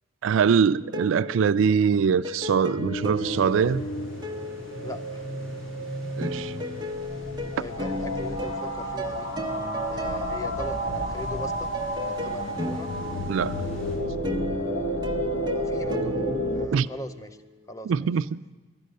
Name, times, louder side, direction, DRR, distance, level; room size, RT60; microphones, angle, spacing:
voice 1, 0.2-3.8 6.2-6.5 13.3-13.6 16.7-16.9 17.9-18.4, right 6 dB, 75° right, 0.3 m, -23 dB
sound 1, 0.8-5.6 6.2-17.5, left 1 dB, 20° right, 0.7 m, -35 dB
sound 2, 2.8-16.7, equal, 60° left, 0.8 m, -31 dB
sound 3, 3.2-14.0, equal, 80° left, 5.6 m, -48 dB
voice 2, 4.8-5.2 7.6-9.3 9.9-11.7 12.0-12.9 15.5-16.1 16.5-17.4 17.7-18.1, left 1 dB, 15° left, 0.4 m, -40 dB
11.5 x 10.0 x 6.5 m
head